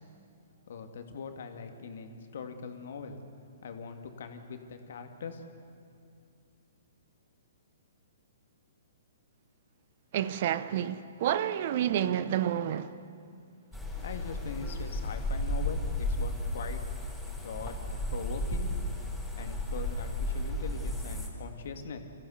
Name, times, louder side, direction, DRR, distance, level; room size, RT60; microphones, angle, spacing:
voice 1, 0.7-3.2 3.6-5.4 14.0-16.8 17.4-17.8 18.1-18.7 19.4-22.0, left 5 dB, 65° left, 2.1 m, -41 dB
voice 2, 10.1-12.9, right 10 dB, 50° right, 0.8 m, -29 dB
sound 1, 13.7-21.3, left 1 dB, ahead, 5.0 m, -33 dB
25.0 x 15.0 x 8.1 m
hypercardioid pair, 125°, 0 cm